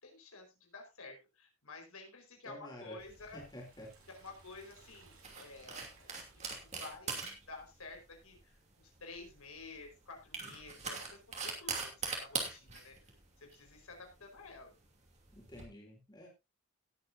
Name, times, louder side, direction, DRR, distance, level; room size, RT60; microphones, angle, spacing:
voice 1, 0.0-3.4 4.1-7.2 7.5-14.7, left 3 dB, 75° left, 3 dB, 4.9 m, -52 dB
voice 2, 2.5-3.0 3.3-3.9 15.3-16.3, left 1 dB, 20° left, -1 dB, 3.9 m, -50 dB
Liquid, 2.8-7.4, right 4 dB, 70° right, 4.8 m, -64 dB
sound 1, 3.0-15.6, right 5 dB, 30° right, 2.9 m, -43 dB
19.0 x 8.5 x 2.7 m, 0.25 s
head